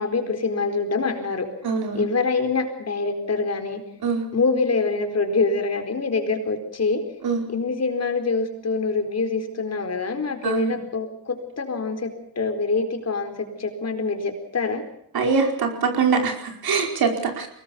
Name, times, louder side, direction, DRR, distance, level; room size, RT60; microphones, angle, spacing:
voice 1, 0.0-1.5 1.9-3.8 4.3-7.0 7.5-14.8, left 4 dB, 40° left, 5 dB, 4.4 m, -25 dB
voice 2, 1.6-2.1 4.0-4.2 7.2-7.5 10.4-10.7 15.1-17.5, right 5 dB, 70° right, 3 dB, 4.9 m, -23 dB
23.0 x 19.5 x 7.0 m, 0.76 s
cardioid pair, 100°, 38 cm